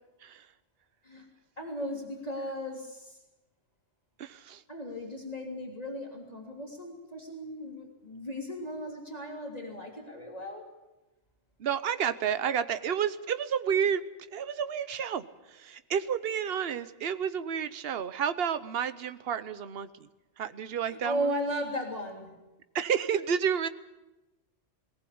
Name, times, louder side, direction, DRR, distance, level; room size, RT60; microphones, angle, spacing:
voice 1, 1.6-3.2 4.7-10.7 20.9-22.3, equal, 35° left, 0 dB, 3.3 m, -36 dB
voice 2, 4.2-4.6 11.6-14.0 14.3-15.2 15.5-19.9 20.4-21.3 22.7-23.7, right 8 dB, 60° right, 12 dB, 1.1 m, -30 dB
19.5 x 18.5 x 8.6 m, 1.0 s
omnidirectional pair, 1.2 m